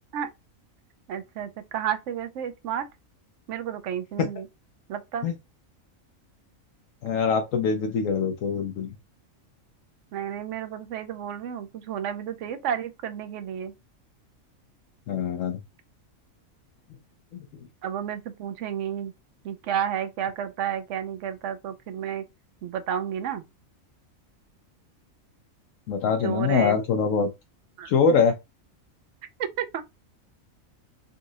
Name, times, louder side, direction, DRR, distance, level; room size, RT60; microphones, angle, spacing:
voice 1, 1.1-2.9 3.5-4.5 4.9-5.3 10.1-13.7 17.8-19.1 19.4-22.2 22.6-23.4 26.2-26.8 27.8-27.9 29.4-29.8, right 9 dB, 70° right, 0.9 m, -31 dB
voice 2, 7.0-8.9 15.1-15.6 25.9-27.3 27.8-28.4, left 5 dB, 75° left, 1.0 m, -23 dB
4.0 x 2.5 x 2.6 m
omnidirectional pair, 1.4 m